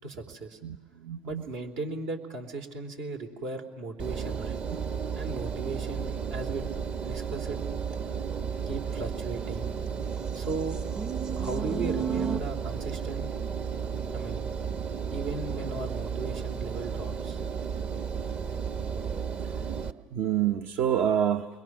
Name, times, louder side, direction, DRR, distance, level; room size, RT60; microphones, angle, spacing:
voice 1, 0.0-0.6 1.2-4.6 5.1-6.7 7.0-7.6 8.7-9.8 10.3-11.1 11.4-13.3 14.1-14.5 15.1-17.4, right 3 dB, 75° right, 3 dB, 3.1 m, -37 dB
voice 2, 0.6-1.4 19.5-19.6 20.1-21.5, right 9 dB, 60° right, 8 dB, 0.9 m, -27 dB
Engine, 4.0-19.9, right 6 dB, 40° right, 1.1 m, -33 dB
sound 1, 4.1-9.9 10.5-12.4, right 7 dB, 25° right, 0.7 m, -38 dB
29.5 x 22.0 x 6.1 m, 1.3 s
hypercardioid pair, 80°, 3 cm